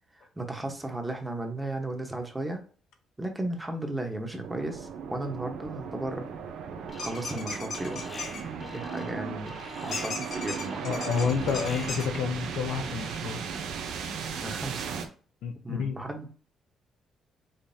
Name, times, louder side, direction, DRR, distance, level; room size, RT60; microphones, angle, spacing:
voice 1, 0.2-2.6 3.2-6.3 7.0-8.1 8.6-9.5 9.8-11.1 14.3-14.9 15.6-16.3, right 2 dB, 15° right, 1.2 m, -35 dB
sound 1, 4.4-15.1, right 6 dB, 85° right, 0.8 m, -36 dB
Alarm, 6.9-7.5 7.7-12.2, left 3 dB, 30° left, 0.6 m, -45 dB
sound 2, 7.0-8.4 9.9-12.1, left 4 dB, 65° left, 1.2 m, -36 dB
voice 2, 10.8-13.4 15.4-16.0, left 6 dB, 80° left, 0.8 m, -29 dB
5.2 x 3.3 x 2.8 m
cardioid pair, 90°, 0 cm